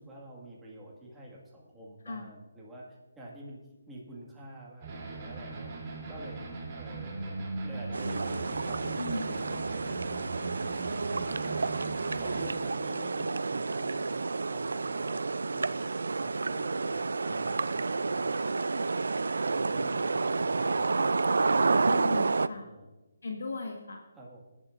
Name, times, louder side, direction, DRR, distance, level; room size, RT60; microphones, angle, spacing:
voice 1, 0.0-11.7 12.1-14.1 14.5-18.5 19.0-21.7 22.5-22.9 24.1-24.4, right 1 dB, 5° right, -5 dB, 1.9 m, -48 dB
sound 1, 4.8-12.5, right 3 dB, 25° right, 3.1 m, -39 dB
sound 2, 7.9-22.5, right 3 dB, 80° right, 0.4 m, -30 dB
voice 2, 9.0-9.3 21.9-22.7 23.2-24.0, left 3 dB, 70° left, 2 dB, 1.6 m, -37 dB
20.5 x 11.0 x 2.6 m, 1.1 s
hypercardioid pair, 170°, 0 cm